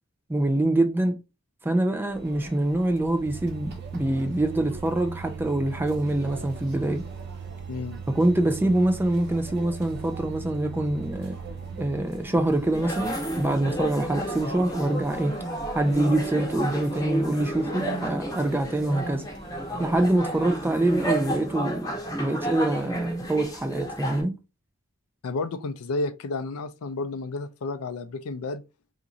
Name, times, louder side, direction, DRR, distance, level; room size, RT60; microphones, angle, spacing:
voice 1, 0.3-1.2 1.6-7.0 8.1-11.4 11.8-15.4 15.7-19.3 19.8-24.4, right 1 dB, 10° right, 0.3 m, -25 dB
Conversation / Chatter / Crowd, 2.1-20.5, right 1 dB, 50° right, 0.9 m, -45 dB
sound 1, 3.2-13.9, right 7 dB, 90° right, 0.3 m, -40 dB
voice 2, 7.7-8.0 25.2-28.6, left 3 dB, 80° left, 0.4 m, -31 dB
sound 2, 12.7-24.2, right 1 dB, 15° left, 0.7 m, -31 dB
2.9 x 2.5 x 3.7 m
head